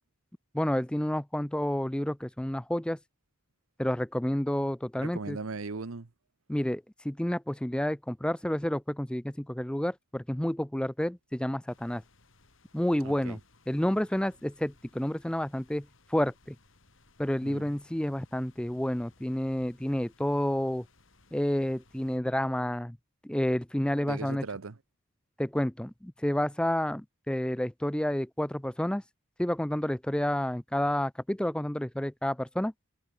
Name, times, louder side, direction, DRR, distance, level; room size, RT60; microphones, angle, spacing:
voice 1, 0.5-3.0 3.8-5.4 6.5-12.0 12.7-13.4 13.7-16.6 17.2-20.8 21.3-23.0 23.2-24.4 25.4-29.0 29.4-32.7, left 1 dB, 5° left, 0.4 m, -30 dB
voice 2, 5.0-6.1 13.0-13.4 17.4-17.7 24.0-24.8, right 4 dB, 85° right, 0.9 m, -38 dB
sound 1, 11.7-22.2, left 3 dB, 70° left, 3.8 m, -63 dB
head